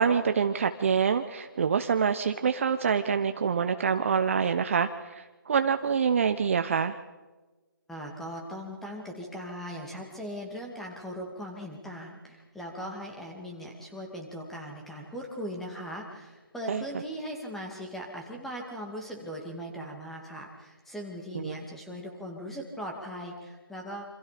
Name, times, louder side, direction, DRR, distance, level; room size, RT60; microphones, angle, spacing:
voice 1, 0.0-7.0 16.7-16.8 21.3-21.6, right 6 dB, 35° right, 9 dB, 0.9 m, -26 dB
voice 2, 7.9-24.0, equal, ahead, 1 dB, 2.4 m, -39 dB
28.5 x 26.5 x 5.1 m, 1.2 s
figure-of-eight pair, 160°, 12 cm